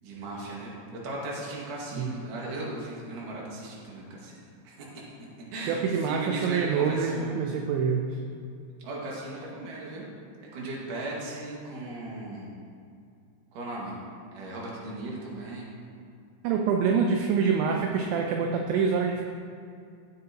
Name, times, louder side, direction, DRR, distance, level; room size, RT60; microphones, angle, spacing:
voice 1, 0.0-4.4 4.6-7.3 8.8-10.1 10.5-12.5 13.5-14.0 14.3-15.7, right 2 dB, 55° right, -4 dB, 2.7 m, -37 dB
voice 2, 5.7-8.2 16.4-19.2, right 6 dB, 80° right, 2 dB, 2.7 m, -26 dB
17.5 x 7.6 x 2.9 m, 2.4 s
omnidirectional pair, 5.7 m